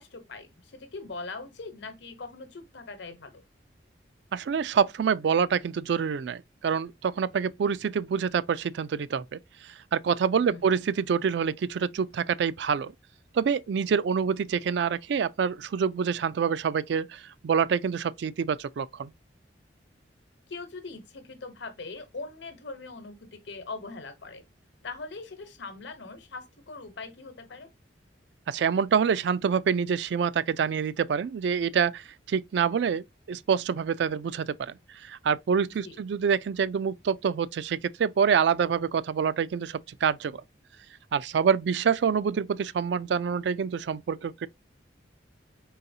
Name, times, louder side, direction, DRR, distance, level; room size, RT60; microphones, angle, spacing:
voice 1, 0.0-3.4 10.4-10.8 20.5-24.4 24.8-27.7 35.8-36.0, left 3 dB, 75° left, 1.0 m, -41 dB
voice 2, 4.3-12.9 13.3-19.1 28.5-40.4 41.1-44.5, right 6 dB, 70° right, 0.3 m, -26 dB
3.9 x 3.9 x 2.7 m
head